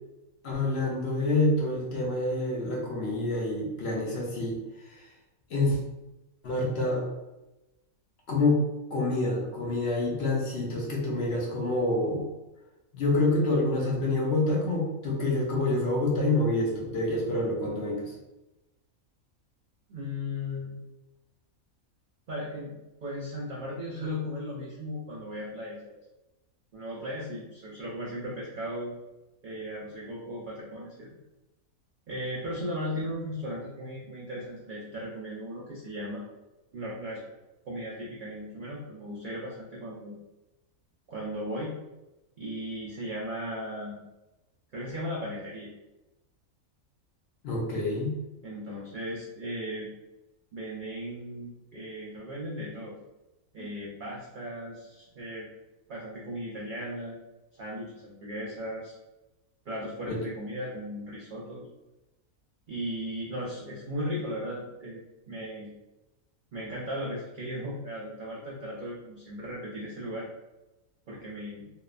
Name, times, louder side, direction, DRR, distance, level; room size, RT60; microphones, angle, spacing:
voice 1, 0.4-4.6 5.5-5.8 6.4-7.1 8.3-8.6 8.9-12.3 12.9-18.1 47.4-48.2 60.1-60.2, left 2 dB, 65° left, -2 dB, 0.7 m, -27 dB
voice 2, 19.9-20.8 22.3-26.0 26.7-28.9 29.4-31.1 32.1-36.2 36.7-37.2 37.7-40.1 41.1-41.7 42.4-44.0 44.7-45.7 48.4-49.9 50.5-53.0 53.5-55.5 55.9-57.2 57.6-58.9 59.7-61.6 62.7-65.0 65.3-65.7 66.5-70.3 71.1-71.7, equal, 80° right, -5 dB, 0.4 m, -36 dB
2.9 x 2.0 x 2.3 m, 1.0 s
omnidirectional pair, 1.4 m